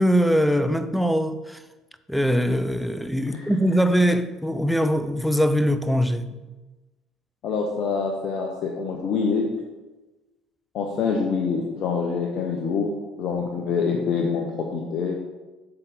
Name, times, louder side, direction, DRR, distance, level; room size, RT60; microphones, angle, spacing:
voice 1, 0.0-1.6 2.1-6.3, equal, ahead, 0.6 m, -22 dB
voice 2, 7.4-9.5 10.7-12.9 13.2-15.2, left 5 dB, 50° left, 0.8 m, -25 dB
7.9 x 5.7 x 3.7 m
figure-of-eight pair, 60°, 0 cm